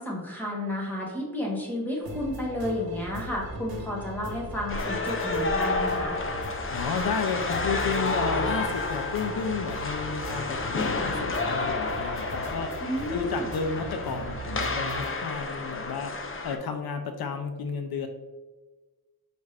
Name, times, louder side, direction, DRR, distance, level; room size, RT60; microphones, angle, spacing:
voice 1, 0.0-6.2 12.8-13.5, left 1 dB, 5° left, -4 dB, 1.2 m, -32 dB
sound 1, 2.0-15.1, right 1 dB, 80° right, 0.8 m, -39 dB
sound 2, 4.7-16.6, left 3 dB, 35° left, 0.5 m, -30 dB
voice 2, 6.7-12.7 13.1-16.1 16.4-18.1, left 5 dB, 85° left, 6 dB, 0.5 m, -32 dB
5.3 x 2.4 x 3.2 m, 1.3 s
wide cardioid pair, 100°, 36 cm